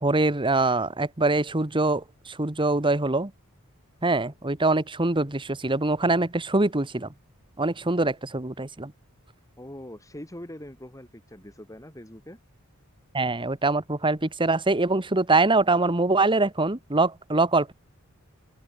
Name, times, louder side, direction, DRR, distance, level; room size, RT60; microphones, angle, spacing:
voice 1, 0.0-3.3 4.0-7.1 7.6-8.9 13.1-17.7, right 2 dB, 25° right, 1.4 m, -24 dB
voice 2, 9.6-12.4, left 1 dB, 15° left, 4.8 m, -42 dB
open air
head